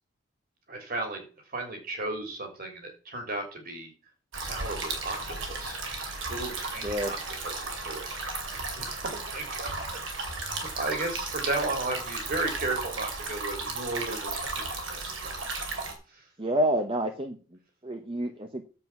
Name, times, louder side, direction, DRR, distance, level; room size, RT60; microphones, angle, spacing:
voice 1, 0.7-3.9 4.4-5.8 6.3-7.2 7.4-10.0 10.3-15.3 16.1-16.3, right 2 dB, 50° right, 4 dB, 3.3 m, -35 dB
sound 1, 4.3-15.9, right 3 dB, 70° right, 2.9 m, -35 dB
voice 2, 6.8-7.1 16.4-18.6, right 1 dB, 25° right, 6 dB, 1.0 m, -29 dB
9.7 x 7.8 x 6.0 m, 0.37 s
head